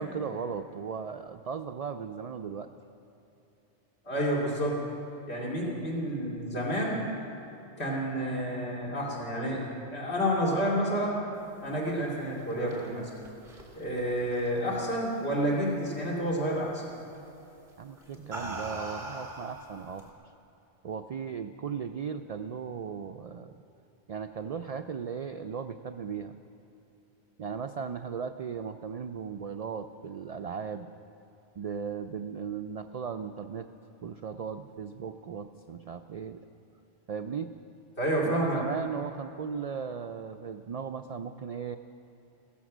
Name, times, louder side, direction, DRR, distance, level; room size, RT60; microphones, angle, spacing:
voice 1, 0.0-2.7 17.8-20.1 20.8-23.6 24.1-26.3 27.4-30.9 31.6-33.7 34.0-36.5 37.1-37.5 38.2-41.8, right 6 dB, 65° right, 8 dB, 0.3 m, -37 dB
voice 2, 4.0-4.8 5.3-7.1 7.8-11.3 11.6-13.1 13.7-16.8 38.0-38.6, equal, 65° left, -5 dB, 2.8 m, -29 dB
sound 1, 12.2-15.1 15.5-15.9 17.1-17.3 18.0-20.1, right 2 dB, 40° right, 2.6 m, -41 dB
16.5 x 14.5 x 6.1 m, 2.9 s
omnidirectional pair, 1.2 m